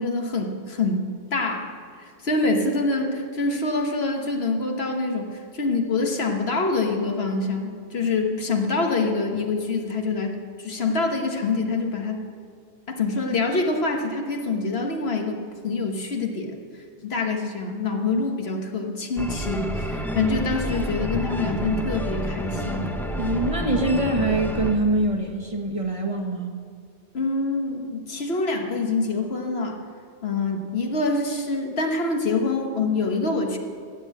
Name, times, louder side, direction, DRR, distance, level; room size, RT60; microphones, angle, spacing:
voice 1, 0.0-1.7 2.0-12.2 12.9-16.6 17.0-22.9 27.1-29.8 30.2-33.6, left 3 dB, 60° left, 3 dB, 1.5 m, -25 dB
sound 1, 19.2-24.8, equal, ahead, 0.7 m, -29 dB
voice 2, 23.2-26.6, right 2 dB, 30° right, 2 dB, 1.3 m, -24 dB
14.0 x 8.3 x 8.1 m, 2.1 s
omnidirectional pair, 1.2 m